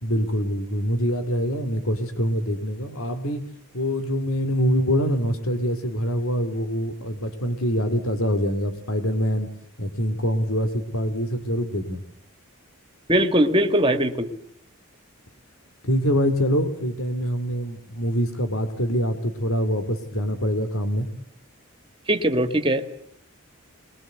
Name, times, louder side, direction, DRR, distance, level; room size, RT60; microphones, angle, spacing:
voice 1, 0.0-3.5 3.7-9.5 9.8-12.0 15.8-21.1, equal, 75° left, 9 dB, 2.7 m, -25 dB
voice 2, 13.1-14.3 22.1-22.9, right 1 dB, 25° right, 8 dB, 1.9 m, -20 dB
24.0 x 21.0 x 7.9 m, 0.64 s
head